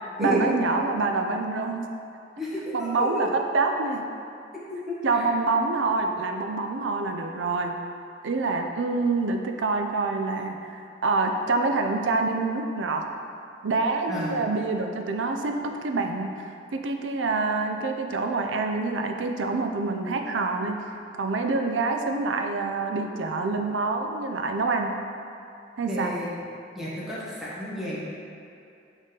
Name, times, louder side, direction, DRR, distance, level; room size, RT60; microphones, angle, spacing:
voice 1, 0.0-1.9 2.7-4.1 5.0-7.8 8.2-13.1 13.6-24.9 25.8-26.1, right 3 dB, 85° right, 4 dB, 0.5 m, -26 dB
voice 2, 2.4-3.2 4.7-5.3 14.1-14.4 25.9-26.3 26.7-28.0, equal, ahead, -9 dB, 1.3 m, -31 dB
6.2 x 3.9 x 3.8 m, 2.6 s
head